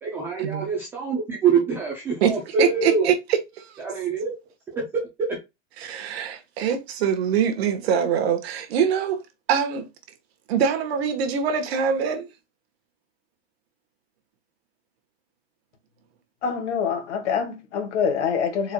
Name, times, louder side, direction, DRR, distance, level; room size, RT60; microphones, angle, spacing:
voice 1, 0.0-3.1 3.8-4.3 4.8-4.9 5.2-5.4, right 5 dB, 5° right, 0.3 m, -25 dB
voice 2, 2.6-3.8 5.8-9.2 9.5-9.9 10.5-12.3, right 7 dB, 60° right, 1.3 m, -24 dB
voice 3, 16.4-18.7, left 6 dB, 80° left, 2.0 m, -25 dB
4.5 x 4.4 x 2.2 m
supercardioid pair, 170°, 35 cm